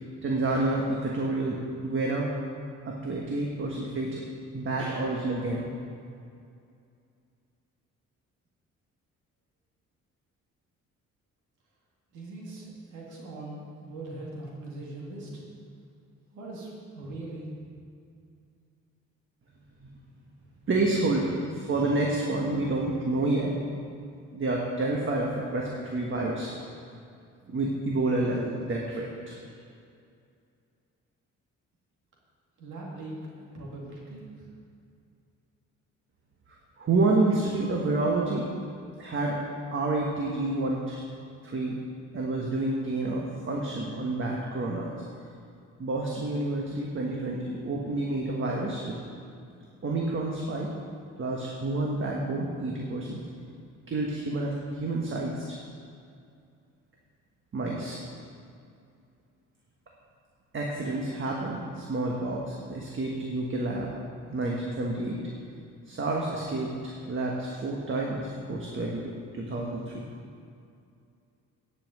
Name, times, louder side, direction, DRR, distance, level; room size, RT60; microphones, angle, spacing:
voice 1, 0.2-2.3 2.8-4.2 4.5-5.7 19.8-19.9 20.7-23.6 24.3-26.5 27.5-29.3 36.8-38.5 39.0-39.4 39.7-41.0 41.4-41.8 42.1-44.9 45.8-49.0 49.8-50.7 51.2-53.2 53.9-54.5 54.8-55.6 57.5-58.0 60.5-63.9 64.3-65.2 65.9-68.2 68.5-70.1, right 2 dB, 40° right, -2 dB, 1.5 m, -29 dB
voice 2, 12.1-12.7 12.9-15.3 16.3-17.5 32.6-34.2, right 2 dB, 85° right, -3 dB, 2.4 m, -40 dB
10.5 x 5.8 x 7.8 m, 2.4 s
cardioid pair, 90°, 30 cm